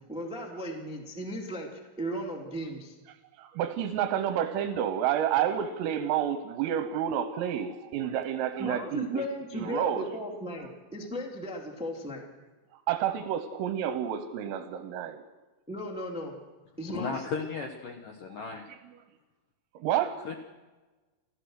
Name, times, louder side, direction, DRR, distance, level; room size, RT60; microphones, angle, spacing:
voice 1, 0.1-2.9 8.6-12.2 15.7-16.3 16.8-17.1, equal, 5° right, 1 dB, 0.4 m, -36 dB
voice 2, 3.4-9.2 9.5-10.1 12.9-15.2 19.8-20.2, right 10 dB, 80° right, 8 dB, 3.7 m, -29 dB
voice 3, 16.9-18.7 20.2-20.4, left 5 dB, 85° left, 3 dB, 1.9 m, -35 dB
29.5 x 14.5 x 6.5 m, 1.2 s
omnidirectional pair, 5.9 m